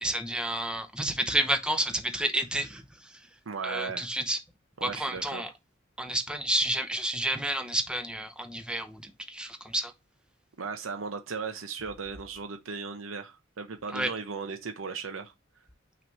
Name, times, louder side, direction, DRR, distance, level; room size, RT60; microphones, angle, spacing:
voice 1, 0.0-3.2 3.6-4.4 4.8-5.5 6.0-9.9 13.9-14.1, right 1 dB, 5° right, 0.8 m, -30 dB
voice 2, 3.5-4.1 4.8-5.5 10.6-15.3, right 5 dB, 75° right, 0.7 m, -36 dB
5.8 x 3.1 x 5.3 m
head